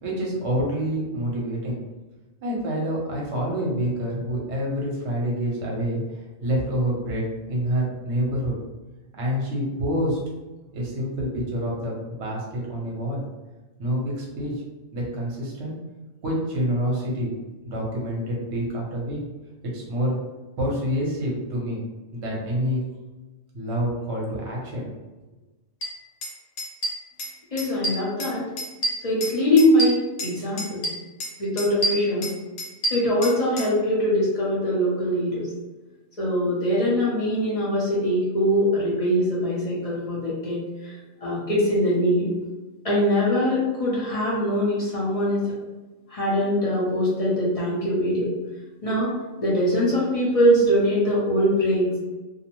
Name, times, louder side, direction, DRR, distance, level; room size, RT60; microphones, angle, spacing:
voice 1, 0.0-1.8 2.4-6.0 6.4-8.5 9.1-10.2 10.7-13.2 13.8-14.6 14.9-15.7 16.2-17.3 17.6-19.2 19.7-20.2 20.6-21.8 22.1-22.8 23.5-24.9, equal, 60° right, -3 dB, 1.0 m, -27 dB
sound 1, 25.8-25.9 26.2-26.3 26.6-27.3 27.6-28.3 28.6-30.3 30.6-31.3 31.6-33.7, right 1 dB, 90° left, 1.1 m, -28 dB
voice 2, 27.5-28.4 29.0-30.8 31.4-32.3 32.9-35.5 36.2-40.9 41.2-42.3 42.8-45.4 46.1-48.3 48.8-49.1 49.4-51.9, equal, 35° left, -7 dB, 0.6 m, -22 dB
2.6 x 2.0 x 2.9 m, 1.2 s
omnidirectional pair, 1.3 m